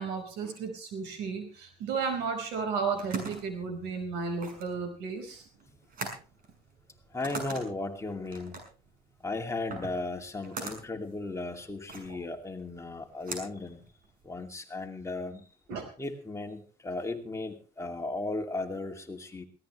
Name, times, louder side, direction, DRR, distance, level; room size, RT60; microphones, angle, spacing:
voice 1, 0.0-5.4 12.1-12.2 15.7-15.8, right 5 dB, 90° right, 6 dB, 5.0 m, -33 dB
sound 1, 2.6-14.5, right 4 dB, 55° right, 6.3 m, -43 dB
voice 2, 7.1-8.6 9.2-13.8 14.2-15.4 16.0-19.4, left 2 dB, 15° left, 3 dB, 2.6 m, -36 dB
21.0 x 16.5 x 3.3 m, 0.36 s
cardioid pair, 110°, 17 cm